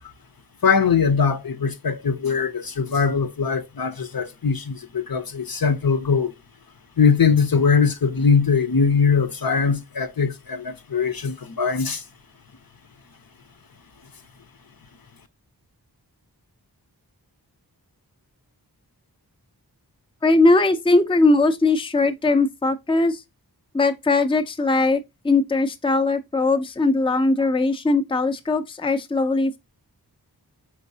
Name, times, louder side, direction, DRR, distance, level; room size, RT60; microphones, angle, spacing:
voice 1, 0.6-6.3 7.0-12.0, left 5 dB, 65° left, 0.7 m, -21 dB
voice 2, 20.2-23.2 23.7-29.6, left 3 dB, 15° left, 0.5 m, -20 dB
4.7 x 3.8 x 2.6 m
wide cardioid pair, 45°, 39 cm